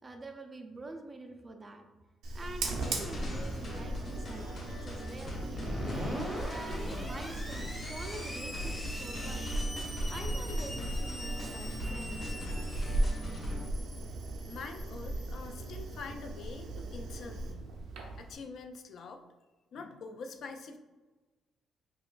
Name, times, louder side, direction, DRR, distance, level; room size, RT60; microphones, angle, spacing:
voice 1, 0.0-1.8 2.3-5.8 6.4-9.5 10.1-12.2, right 2 dB, 20° right, 5 dB, 0.3 m, -46 dB
Fire, 2.2-18.3, right 2 dB, 85° right, 0.6 m, -38 dB
sound 1, 2.8-13.7, left 1 dB, 35° left, 1.1 m, -41 dB
Screech, 5.6-16.0, equal, 5° left, 0.7 m, -43 dB
voice 2, 14.5-17.7 18.2-19.2 19.7-20.8, left 4 dB, 55° left, 5 dB, 0.3 m, -45 dB
5.0 x 2.3 x 2.3 m, 1.2 s
cardioid pair, 165°, 0 cm